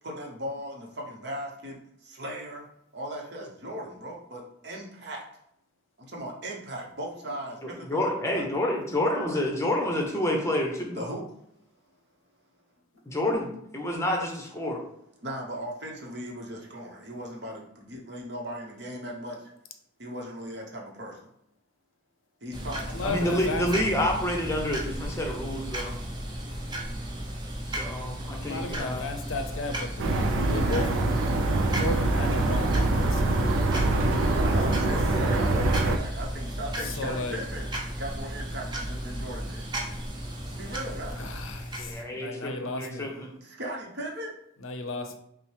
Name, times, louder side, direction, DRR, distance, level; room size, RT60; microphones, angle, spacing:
voice 1, 0.0-2.7 2.9-5.2 6.0-8.0 8.3-8.5 11.0-11.2 15.2-19.5 20.0-21.2 22.4-23.4 34.3-37.7 38.0-39.7 40.4-41.2 41.8-42.2 43.4-44.3, right 1 dB, 55° right, -1 dB, 0.9 m, -38 dB
voice 2, 7.6-11.0 13.1-14.8 23.0-25.9 27.6-29.1 41.8-43.3, left 1 dB, 15° left, 0 dB, 0.7 m, -29 dB
sound 1, 22.5-42.0, right 1 dB, 20° right, 0.6 m, -35 dB
voice 3, 22.9-23.7 28.3-30.9 31.7-34.0 34.2-34.9 35.5-35.7 36.8-37.4 41.2-43.1 44.6-45.2, left 2 dB, 80° left, 6 dB, 0.6 m, -35 dB
sound 2, 30.0-36.0, right 2 dB, 75° right, 0.4 m, -24 dB
5.7 x 2.1 x 3.3 m, 0.75 s
head